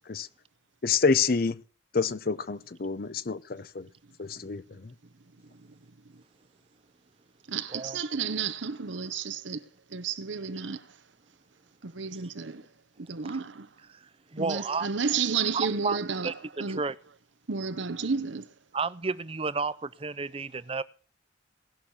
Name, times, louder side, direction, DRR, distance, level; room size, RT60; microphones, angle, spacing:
voice 1, 0.8-1.6 1.9-3.9 4.2-4.9, left 5 dB, 50° left, 0.7 m, -27 dB
voice 2, 7.5-10.9 11.8-12.6 13.0-13.7 14.4-16.8 17.5-18.5, right 5 dB, 75° right, 0.9 m, -32 dB
voice 3, 14.3-14.9 15.5-16.0 16.2-17.0 18.7-20.8, right 4 dB, 30° right, 0.6 m, -31 dB
18.5 x 6.5 x 7.2 m
head